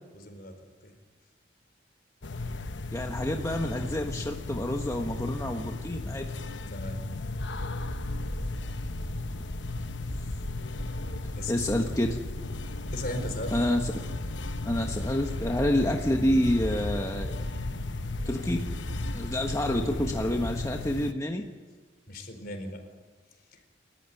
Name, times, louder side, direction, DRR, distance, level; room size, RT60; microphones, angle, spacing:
voice 1, 0.1-1.0 6.7-7.0 11.3-11.5 12.9-13.6 22.1-22.8, left 1 dB, 55° left, 7 dB, 4.4 m, -37 dB
sound 1, 2.2-21.1, left 2 dB, 75° left, 1.0 m, -36 dB
voice 2, 2.9-6.3 11.5-12.2 13.5-13.9 14.6-17.4 18.2-18.6 19.1-21.4, left 1 dB, 15° left, 2 dB, 1.3 m, -28 dB
sound 2, 7.4-20.7, equal, ahead, 2.0 m, -38 dB
29.5 x 14.0 x 9.2 m, 1.4 s
head